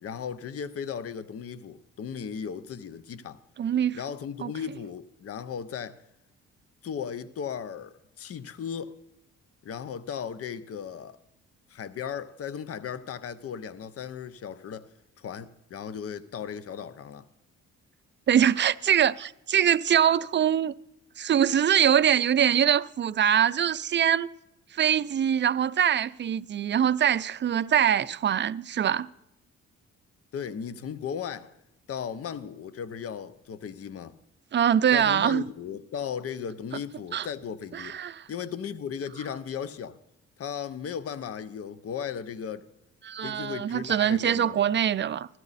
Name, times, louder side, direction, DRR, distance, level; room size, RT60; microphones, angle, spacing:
voice 1, 0.0-3.4 3.9-6.0 6.8-8.9 9.6-11.2 11.7-14.9 15.2-17.3 30.3-31.5 31.9-34.1 34.9-38.0 38.3-40.0 40.4-42.7 43.2-44.6, left 7 dB, 50° left, 0.8 m, -36 dB
voice 2, 3.6-4.0 4.4-4.5 18.3-20.7 21.2-24.3 24.7-29.1 34.5-35.4 37.1-37.3 37.7-38.2 43.0-45.3, right 9 dB, 40° right, 0.5 m, -23 dB
16.0 x 13.5 x 4.1 m
cardioid pair, 90°, 30 cm